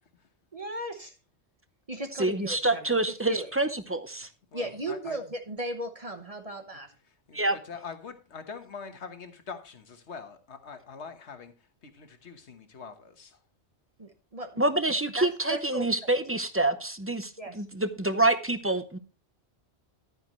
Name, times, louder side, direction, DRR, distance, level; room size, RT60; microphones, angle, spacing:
voice 1, 0.5-1.1 1.9-3.0 3.3-3.5 4.5-6.9 14.0-14.7 15.2-16.1 17.4-17.6, right 1 dB, 35° right, 6 dB, 1.1 m, -36 dB
voice 2, 2.2-4.3 7.3-7.6 14.6-19.0, right 2 dB, 15° right, 11 dB, 0.5 m, -27 dB
voice 3, 4.5-5.2 7.3-7.4 7.7-11.5 11.8-13.4, left 5 dB, 80° left, 8 dB, 1.5 m, -43 dB
11.0 x 9.5 x 3.1 m, 0.33 s
omnidirectional pair, 1.1 m